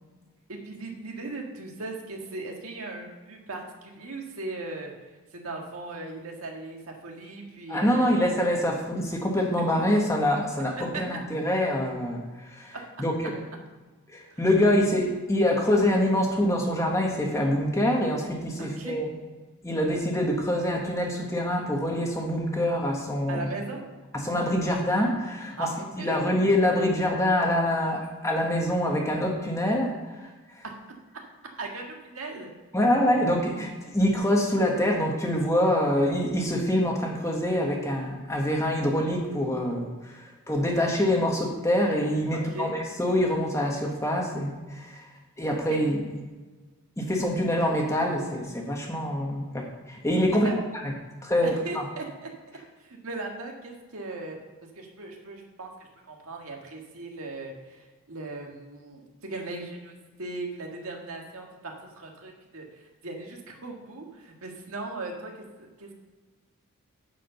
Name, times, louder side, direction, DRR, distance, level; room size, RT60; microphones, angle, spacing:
voice 1, 0.5-4.9 5.3-8.2 8.9-9.0 10.8-11.1 12.7-12.8 14.3-14.5 18.6-18.9 23.3-23.8 25.6-25.7 26.0-26.2 31.6-32.5 42.3-42.7 45.7-45.8 50.3-50.6 51.4-52.3 52.8-54.4 54.7-65.3 65.6-65.9, right 3 dB, 75° right, 1 dB, 1.7 m, -38 dB
voice 2, 7.7-13.4 14.1-19.0 19.6-23.5 24.1-30.3 30.5-30.6 32.7-45.0 45.4-46.0 47.0-50.5 51.2-51.8, left 1 dB, 15° left, 0 dB, 1.3 m, -25 dB
10.5 x 5.0 x 6.7 m, 1.3 s
head